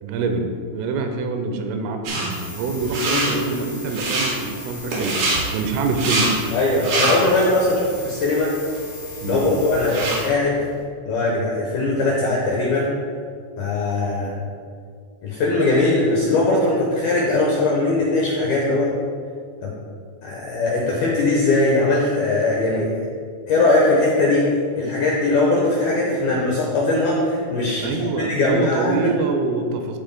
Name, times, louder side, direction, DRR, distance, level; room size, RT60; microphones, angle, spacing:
voice 1, 0.0-6.5 9.2-9.6 27.8-30.0, right 4 dB, 85° right, 5 dB, 3.3 m, -25 dB
sound 1, 2.0-2.3 2.8-3.3 3.8-4.3 4.9-5.4 5.8-6.3 6.7-7.5 8.0-8.1 8.7-8.8 9.1-10.2, right 2 dB, 60° right, 3.6 m, -24 dB
sound 2, 2.3-10.3, left 2 dB, 50° left, 0.6 m, -38 dB
voice 2, 6.5-8.5 9.2-10.6 11.0-12.9 13.6-14.3 15.2-18.9 19.6-19.7 20.2-22.9 23.5-24.5 24.8-29.0, left 2 dB, 75° left, -3 dB, 2.2 m, -20 dB
15.0 x 7.8 x 2.2 m, 2.1 s
omnidirectional pair, 5.8 m